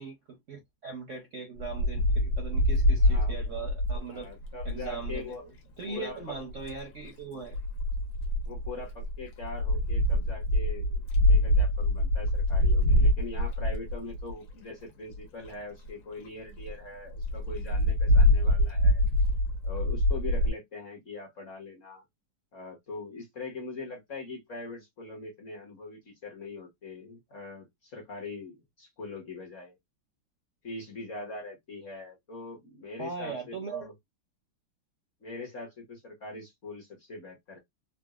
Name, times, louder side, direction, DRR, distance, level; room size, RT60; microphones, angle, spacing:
voice 1, 0.0-4.3 4.6-5.3 5.8-7.6 33.0-33.9, right 5 dB, 60° right, 0.8 m, -39 dB
Wind, 1.6-5.2 6.3-6.8 7.5-14.5 15.1-15.2 15.4-15.5 15.9-16.0 16.2-16.3 16.6-16.7 17.2-20.5, left 1 dB, 70° left, 1.8 m, -25 dB
voice 2, 3.0-3.7 4.1-5.5 5.9-6.4 8.4-19.0 19.6-22.0 22.5-29.8 30.6-33.9 35.2-37.6, left 3 dB, 45° left, 1.1 m, -42 dB
4.0 x 2.2 x 2.3 m
omnidirectional pair, 2.2 m